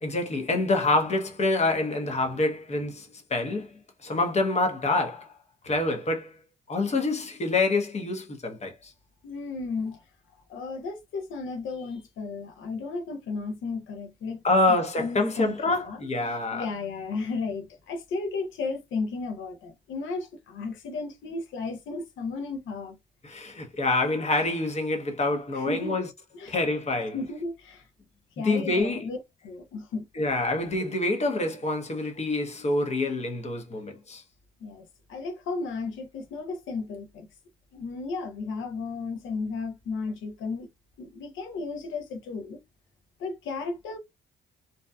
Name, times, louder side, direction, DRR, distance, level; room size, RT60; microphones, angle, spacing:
voice 1, 0.0-3.7 4.0-5.3 5.6-6.4 6.7-8.9 14.4-16.7 23.2-26.1 26.5-27.2 28.4-29.1 30.2-34.2, left 2 dB, 35° left, 0.8 m, -26 dB
voice 2, 9.2-10.0 10.5-14.4 14.7-23.0 25.5-26.0 26.3-26.6 27.1-27.9 28.4-30.0 34.6-37.3 37.7-40.7 41.0-42.6 43.2-44.0, left 4 dB, 80° left, 0.8 m, -34 dB
2.7 x 2.2 x 2.2 m
cardioid pair, 90°, 20 cm